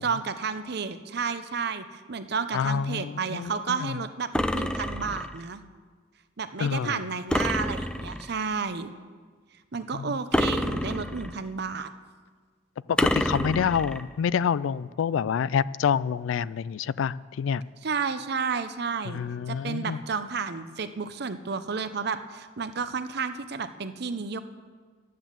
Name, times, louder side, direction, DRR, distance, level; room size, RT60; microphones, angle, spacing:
voice 1, 0.0-5.6 6.4-8.9 9.7-11.9 17.8-19.2 19.5-24.4, right 5 dB, 60° right, 11 dB, 0.7 m, -31 dB
voice 2, 2.5-4.0 6.6-7.0 9.9-10.2 12.9-17.6 19.1-20.0, left 7 dB, 85° left, 20 dB, 0.3 m, -27 dB
sound 1, 4.3-5.4 7.3-8.4 10.3-11.5 13.0-14.0, left 1 dB, 5° left, 0.4 m, -27 dB
12.0 x 9.4 x 7.4 m, 1.5 s
head